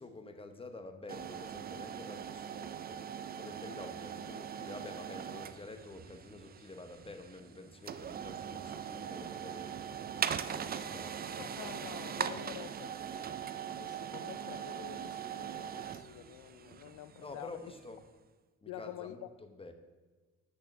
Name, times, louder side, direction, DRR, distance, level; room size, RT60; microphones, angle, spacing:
voice 1, 0.0-3.0 3.4-11.4 17.2-18.0 18.6-19.7, left 2 dB, 20° left, 7 dB, 0.9 m, -49 dB
sound 1, 1.1-17.9, right 8 dB, 30° right, 0.4 m, -41 dB
voice 2, 11.4-13.4 13.8-17.5 18.7-19.3, left 13 dB, 80° left, 14 dB, 0.5 m, -48 dB
6.4 x 6.3 x 5.9 m, 1.3 s
cardioid pair, 90°, 30 cm